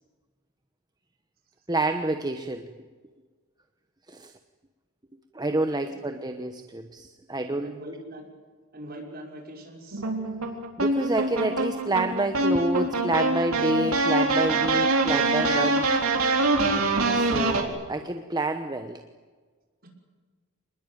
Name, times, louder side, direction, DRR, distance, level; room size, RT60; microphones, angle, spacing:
voice 1, 1.7-2.7 4.1-4.3 5.3-7.8 10.8-15.9 17.1-19.0, right 2 dB, 20° right, 7 dB, 1.1 m, -28 dB
voice 2, 5.5-6.1 7.6-8.3 8.7-10.0, right 1 dB, 45° right, 1 dB, 5.9 m, -42 dB
sound 1, 9.9-17.6, right 2 dB, 85° right, 4.1 m, -24 dB
26.5 x 21.0 x 9.2 m, 1.4 s
head